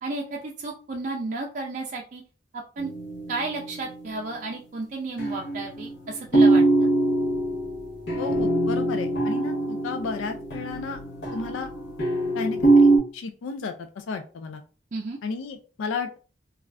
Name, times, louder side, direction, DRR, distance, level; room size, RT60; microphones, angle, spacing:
voice 1, 0.0-2.2 2.8-2.9 3.3-6.6 14.9-15.2, right 3 dB, 40° right, -1 dB, 0.4 m, -32 dB
sound 1, 2.8-4.3 5.2-13.0, right 2 dB, 60° left, 0.8 m, -23 dB
voice 2, 8.2-11.0 11.3-11.7 12.3-14.6 15.2-16.2, left 4 dB, 85° left, 6 dB, 0.3 m, -33 dB
2.4 x 2.3 x 3.2 m, 0.37 s
head